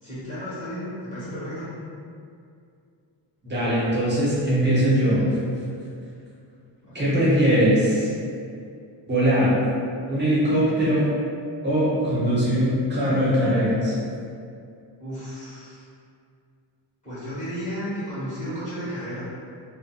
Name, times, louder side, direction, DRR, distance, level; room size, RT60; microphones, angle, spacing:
voice 1, 0.0-1.7 6.8-7.5 15.0-15.8 17.0-19.2, equal, 15° left, -12 dB, 1.2 m, -33 dB
voice 2, 3.4-5.2 6.9-8.1 9.1-9.5 10.1-11.0 11.6-13.9, equal, 25° right, -9 dB, 0.9 m, -21 dB
2.6 x 2.2 x 2.3 m, 2.4 s
cardioid pair, 130°, 44 cm